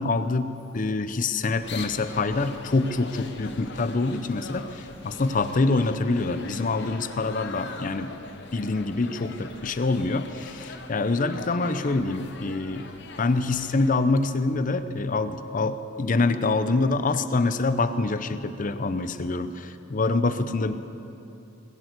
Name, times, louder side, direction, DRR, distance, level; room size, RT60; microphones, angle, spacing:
voice 1, 0.0-8.1 8.5-12.9 13.2-20.7, left 3 dB, 40° left, 11 dB, 0.6 m, -25 dB
sound 1, 1.6-14.0, left 3 dB, 60° left, 1.0 m, -42 dB
20.0 x 8.0 x 8.1 m, 2.8 s
head